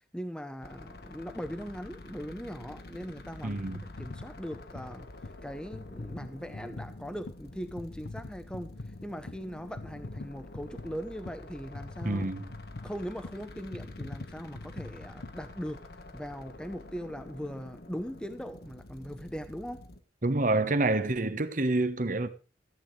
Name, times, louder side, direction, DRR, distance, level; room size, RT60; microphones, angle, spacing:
voice 1, 0.1-3.6 4.0-12.3 12.8-19.8, equal, 5° left, 0.8 m, -40 dB
sound 1, 0.6-20.0, left 2 dB, 60° left, 1.4 m, -48 dB
voice 2, 3.4-3.8 12.0-12.5 20.2-22.3, right 2 dB, 45° right, 1.2 m, -27 dB
sound 2, 3.7-16.1 16.6-16.8, left 2 dB, 80° left, 0.7 m, -45 dB
14.5 x 8.7 x 4.7 m
head